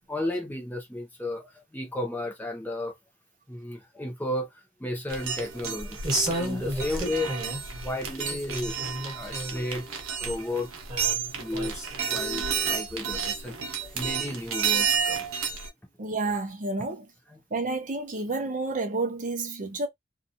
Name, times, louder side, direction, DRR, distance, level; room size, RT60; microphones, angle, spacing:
voice 1, 0.1-3.0 3.5-6.1 6.3-7.3 7.7-10.7 11.0-11.1 11.4-15.2 17.3-17.4, left 1 dB, 10° left, 0.6 m, -34 dB
sound 1, 5.1-15.7, right 6 dB, 75° right, 0.9 m, -31 dB
sound 2, 6.0-7.7 8.1-9.7 10.3-10.4 10.9-12.2 12.9-13.0, right 1 dB, 20° right, 1.3 m, -32 dB
voice 2, 16.0-17.1 17.5-19.9, right 3 dB, 35° right, 0.7 m, -30 dB
2.8 x 2.3 x 2.6 m
head